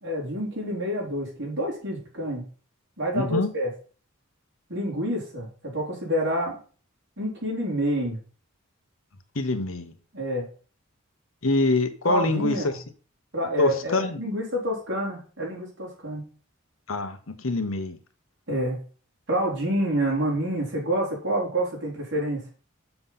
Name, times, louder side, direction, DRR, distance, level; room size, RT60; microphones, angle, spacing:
voice 1, 0.0-2.4 3.0-3.7 4.7-6.6 7.2-8.2 10.1-10.5 12.0-12.8 13.3-16.2 18.5-18.8 19.3-22.4, right 1 dB, 55° right, -3 dB, 4.4 m, -28 dB
voice 2, 3.1-3.5 9.3-9.9 11.4-12.6 13.6-14.2 16.9-18.0, left 2 dB, 75° left, 9 dB, 1.1 m, -25 dB
6.9 x 6.1 x 5.8 m, 0.39 s
head